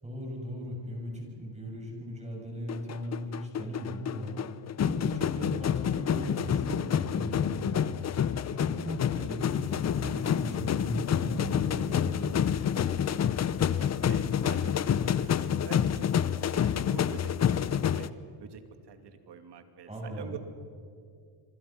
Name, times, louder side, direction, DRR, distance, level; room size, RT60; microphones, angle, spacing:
voice 1, 0.0-12.4 19.9-20.4, equal, 15° right, 0 dB, 7.1 m, -38 dB
sound 1, 2.7-18.1, left 9 dB, 35° left, 0.8 m, -28 dB
voice 2, 13.8-18.1 18.4-18.6 18.9-20.4, right 6 dB, 55° right, 7 dB, 2.7 m, -46 dB
26.5 x 24.5 x 6.0 m, 2.3 s
cardioid pair, 120°, 49 cm